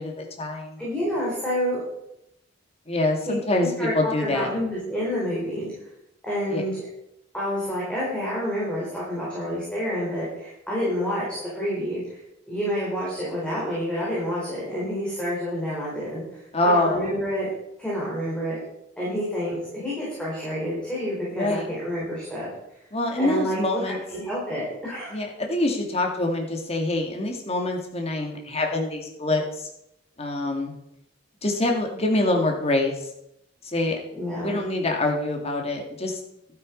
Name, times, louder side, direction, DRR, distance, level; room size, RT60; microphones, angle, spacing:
voice 1, 0.0-0.8 2.9-4.5 6.5-6.6 16.5-17.1 21.3-21.7 22.9-24.0 25.1-29.4 30.2-30.7 31.4-32.9 33.7-34.0 34.4-36.2, left 2 dB, 35° left, 2 dB, 2.3 m, -25 dB
voice 2, 0.8-1.8 3.3-5.7 6.2-6.8 7.3-12.0 12.5-16.2 16.6-17.5 17.8-18.6 19.0-22.5 23.2-25.1 34.1-34.6, equal, 5° left, -7 dB, 4.4 m, -28 dB
12.0 x 9.3 x 5.3 m, 0.81 s
head